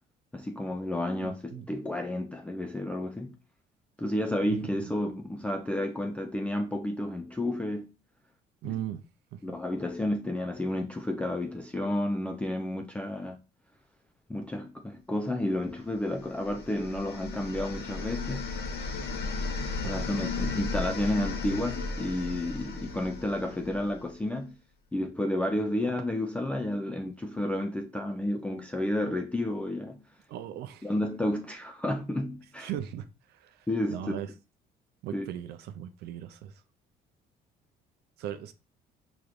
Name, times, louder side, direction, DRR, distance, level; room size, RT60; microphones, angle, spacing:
voice 1, 0.3-3.3 4.0-7.9 8.6-8.8 9.4-13.4 14.3-18.5 19.8-24.5 24.9-30.0 30.8-32.7 33.7-34.2 35.1-35.3, left 1 dB, 5° left, 0.3 m, -31 dB
voice 2, 1.2-1.7 8.6-9.0 19.8-20.3 30.3-30.9 32.6-33.0 33.4-33.5 33.9-34.3 35.0-36.5 38.2-38.5, right 11 dB, 75° right, 0.4 m, -37 dB
sound 1, 16.1-24.1, left 3 dB, 70° left, 0.9 m, -35 dB
4.7 x 3.0 x 2.4 m
cardioid pair, 110°, 17 cm